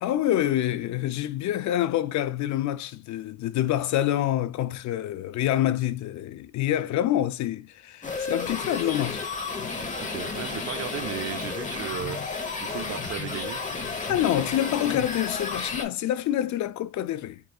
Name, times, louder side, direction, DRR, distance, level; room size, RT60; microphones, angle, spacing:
voice 1, 0.0-9.2 14.0-17.4, left 12 dB, 70° left, 0.5 m, -26 dB
sound 1, 8.0-15.9, left 4 dB, 25° left, 0.9 m, -32 dB
voice 2, 10.0-12.2 12.6-13.6, right 11 dB, 55° right, 0.5 m, -35 dB
4.5 x 2.6 x 2.3 m
cardioid pair, 90°, 30 cm